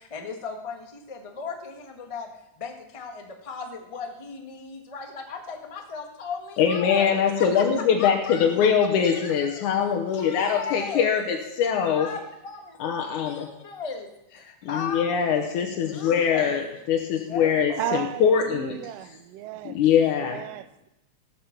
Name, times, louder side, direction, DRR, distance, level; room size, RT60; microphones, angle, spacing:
voice 1, 0.0-8.5 9.0-9.6 10.1-11.2 11.8-16.5 17.3-18.1, left 5 dB, 30° left, 0.6 m, -37 dB
voice 2, 6.6-12.1 12.8-13.5 14.7-18.8 19.6-20.4, left 7 dB, 85° left, 2.6 m, -23 dB
voice 3, 17.8-19.7 20.2-20.9, right 11 dB, 80° right, 1.4 m, -34 dB
17.5 x 7.4 x 7.3 m
omnidirectional pair, 3.5 m